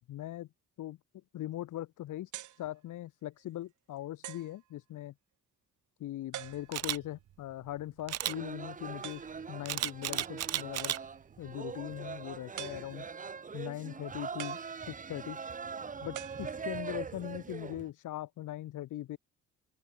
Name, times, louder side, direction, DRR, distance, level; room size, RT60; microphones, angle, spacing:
voice 1, 0.1-0.5 0.8-1.0 1.3-2.3 2.6-5.1 6.0-10.9 11.4-13.1 13.5-15.4 16.0-19.2, left 14 dB, 80° left, 4.7 m, -40 dB
sound 1, 2.3-2.7 3.4-3.5 4.2-4.6 6.3-7.0 9.0-9.4 10.8-11.3 12.6-13.3 14.4-15.3 16.1-17.0, right 12 dB, 75° right, 3.7 m, -46 dB
Camera, 6.7-7.0 8.1-8.4 9.7-11.0 11.5-11.7, right 12 dB, 55° right, 0.7 m, -33 dB
sound 2, 8.2-17.9, right 5 dB, 25° right, 0.9 m, -42 dB
open air
cardioid pair, 90°, 30 cm